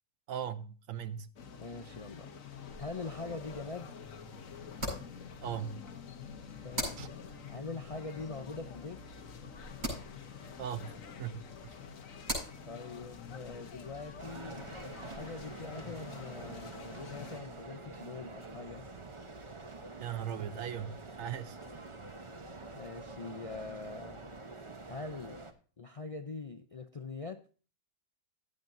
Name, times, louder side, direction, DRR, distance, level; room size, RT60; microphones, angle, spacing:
voice 1, 0.3-1.3 5.4-5.8 7.0-7.1 10.6-11.8 20.0-21.6, right 9 dB, 70° right, 1.1 m, -39 dB
sound 1, 1.4-17.4, left 6 dB, 65° left, 1.5 m, -48 dB
voice 2, 1.6-2.3 2.8-4.0 6.6-7.0 7.5-9.0 12.6-14.6 15.1-18.9 22.7-24.2 24.9-25.4 25.8-27.4, left 3 dB, 45° left, 0.4 m, -43 dB
sound 2, 2.7-15.5, equal, 45° right, 7.4 m, -45 dB
sound 3, 14.2-25.5, right 3 dB, 25° right, 0.9 m, -47 dB
16.0 x 9.0 x 2.6 m
omnidirectional pair, 1.5 m